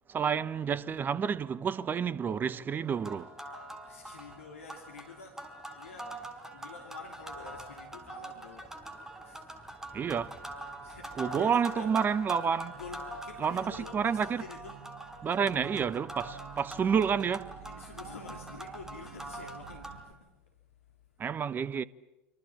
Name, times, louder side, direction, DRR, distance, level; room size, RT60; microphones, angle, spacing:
voice 1, 0.1-3.3 9.9-10.4 11.2-12.8 13.4-14.3 15.2-17.5 21.2-21.8, right 7 dB, 25° right, 1.0 m, -29 dB
sound 1, 2.8-20.1, right 1 dB, 5° right, 5.0 m, -44 dB
voice 2, 3.8-5.4 5.7-6.2 6.5-9.8 10.8-11.9 12.5-14.8 17.6-20.5, left 5 dB, 75° left, 3.0 m, -48 dB
sound 2, 7.5-7.6 7.9-8.8 9.1-20.0, right 9 dB, 65° right, 1.9 m, -53 dB
27.0 x 26.0 x 7.4 m
figure-of-eight pair, 80°, 7 cm